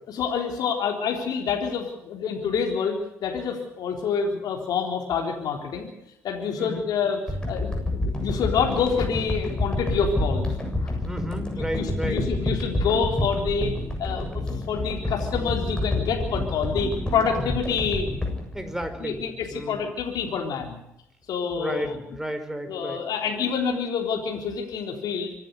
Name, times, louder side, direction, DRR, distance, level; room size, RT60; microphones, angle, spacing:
voice 1, 0.1-5.9 6.2-7.2 7.5-7.7 8.1-11.0 11.7-13.7 14.0-18.2 19.0-20.8 21.3-22.0 22.7-25.3, left 6 dB, 60° left, 2 dB, 3.7 m, -27 dB
sound 1, 7.3-19.5 20.0-20.1, left 1 dB, 10° left, 7.7 m, -28 dB
voice 2, 11.0-12.5 18.5-19.2 19.5-19.8 21.4-23.0, right 1 dB, 5° right, 7 dB, 5.0 m, -33 dB
25.0 x 11.5 x 9.6 m, 0.80 s
hypercardioid pair, 50°, 8 cm